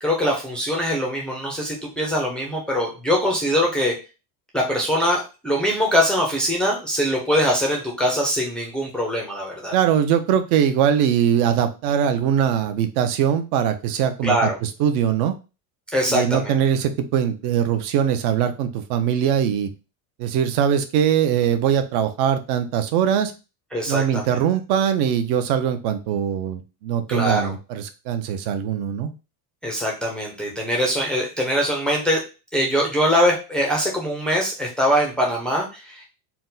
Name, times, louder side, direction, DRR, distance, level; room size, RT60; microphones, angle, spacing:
voice 1, 0.0-4.0 4.5-9.8 14.2-14.6 15.9-16.6 23.7-24.4 27.1-27.5 29.6-32.2 32.5-36.1, equal, ahead, -2 dB, 0.4 m, -22 dB
voice 2, 9.7-14.4 14.6-15.3 16.1-19.7 20.2-23.3 23.9-29.1, right 9 dB, 55° right, 9 dB, 0.7 m, -21 dB
4.3 x 2.1 x 3.8 m, 0.30 s
cardioid pair, 165°, 48 cm